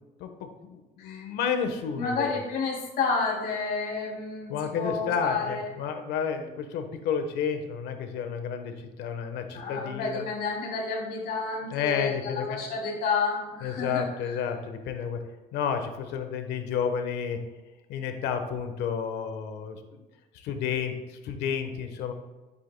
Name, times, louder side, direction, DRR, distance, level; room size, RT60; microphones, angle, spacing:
voice 1, 0.2-2.3 4.5-10.2 11.7-12.6 13.6-15.2 15.5-17.4 17.9-20.0 20.3-22.1, left 7 dB, 85° left, 7 dB, 1.1 m, -31 dB
voice 2, 1.9-5.7 9.5-14.4, left 4 dB, 65° left, -2 dB, 2.9 m, -30 dB
11.0 x 8.4 x 2.2 m, 1.2 s
cardioid pair, 110°, 17 cm